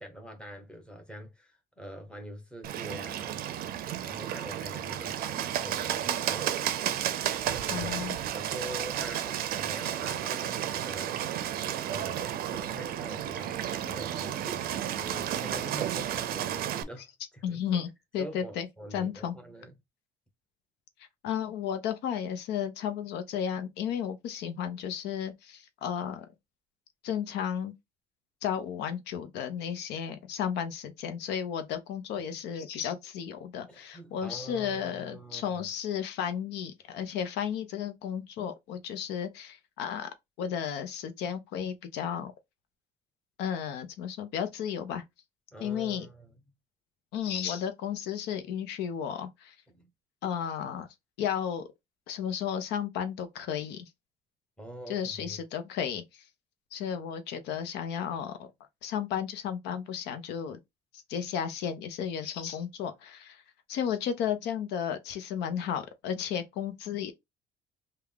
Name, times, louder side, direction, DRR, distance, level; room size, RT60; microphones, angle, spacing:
voice 1, 0.0-3.5 4.0-7.0 7.5-11.2 11.9-17.1 17.3-17.8 18.2-19.7 33.7-35.6 45.5-46.3 49.7-49.9 54.6-55.4, equal, 5° left, 1.1 m, -45 dB
Bird, 2.6-16.8, right 10 dB, 60° right, 0.5 m, -32 dB
voice 2, 7.7-8.2 17.4-18.7 18.9-19.3 21.2-26.3 27.0-27.7 28.4-40.1 40.4-42.3 43.4-45.0 45.6-46.1 47.1-49.5 50.2-50.9 51.2-51.7 52.1-53.9 54.9-56.2 56.7-58.5 58.8-60.6 60.9-63.4 63.7-67.1, left 8 dB, 85° left, 0.7 m, -33 dB
3.5 x 2.3 x 3.5 m
cardioid pair, 110°, 17 cm